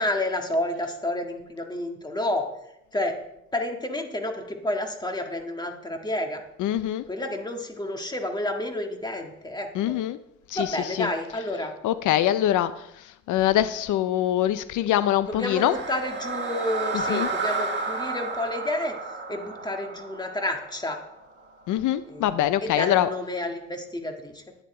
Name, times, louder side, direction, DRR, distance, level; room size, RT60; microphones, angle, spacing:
voice 1, 0.0-2.5 2.9-3.2 3.5-6.4 7.1-10.0 10.5-11.7 15.3-19.0 19.3-21.0 22.1-24.4, left 1 dB, 15° left, 3 dB, 1.9 m, -30 dB
voice 2, 6.6-7.0 9.8-10.2 10.5-11.1 11.8-15.8 17.1-17.3 21.7-23.1, left 12 dB, 80° left, 14 dB, 0.6 m, -24 dB
sound 1, 15.2-21.4, right 3 dB, 35° right, 1.9 m, -32 dB
11.5 x 9.3 x 4.3 m, 0.83 s
cardioid pair, 90°, 30 cm